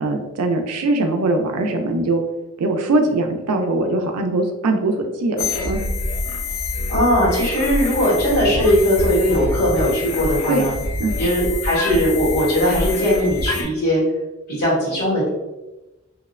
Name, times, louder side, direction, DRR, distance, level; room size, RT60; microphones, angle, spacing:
voice 1, 0.0-2.2 2.6-5.8 10.5-10.7 11.0-11.2, right 2 dB, 85° right, 4 dB, 0.4 m, -21 dB
sound 1, 5.4-13.6, left 2 dB, 70° left, 0.5 m, -26 dB
voice 2, 6.9-10.7 11.2-14.0 14.5-15.3, equal, 85° left, -7 dB, 1.5 m, -19 dB
2.8 x 2.0 x 2.4 m, 1.1 s
head